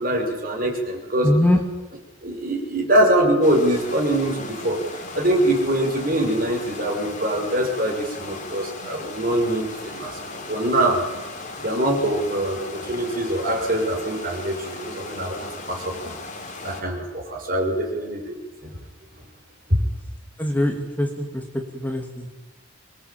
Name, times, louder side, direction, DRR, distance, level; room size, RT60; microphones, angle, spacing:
voice 1, 0.0-1.3 2.2-4.8 5.1-11.0 11.6-16.1 16.6-18.4 18.6-18.7 19.7-19.8, right 1 dB, 45° right, 1 dB, 6.4 m, -23 dB
voice 2, 1.2-1.6 20.4-21.4 21.7-22.4, left 1 dB, 10° left, 3 dB, 2.6 m, -22 dB
sound 1, 3.4-16.8, left 3 dB, 40° left, 4.0 m, -37 dB
25.5 x 22.0 x 8.9 m, 1.1 s
head